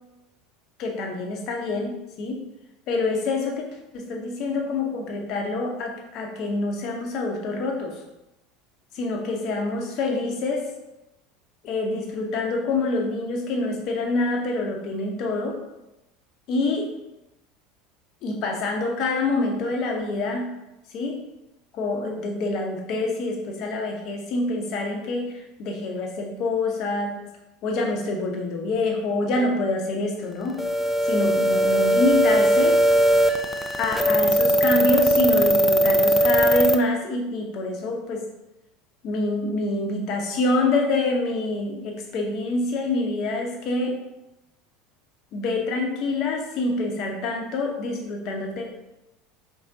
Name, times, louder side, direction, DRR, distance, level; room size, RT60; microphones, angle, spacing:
voice 1, 0.8-2.4 2.9-8.0 8.9-10.7 11.6-15.6 16.5-16.9 18.2-20.5 20.9-21.2 21.7-27.3 27.6-30.6 31.0-32.8 33.8-38.2 39.0-44.0 45.3-48.7, left 2 dB, 45° left, 2 dB, 0.9 m, -26 dB
sound 1, 30.6-36.8, right 1 dB, 10° left, 0.4 m, -19 dB
4.9 x 3.8 x 2.7 m, 0.93 s
figure-of-eight pair, 75°, 0 cm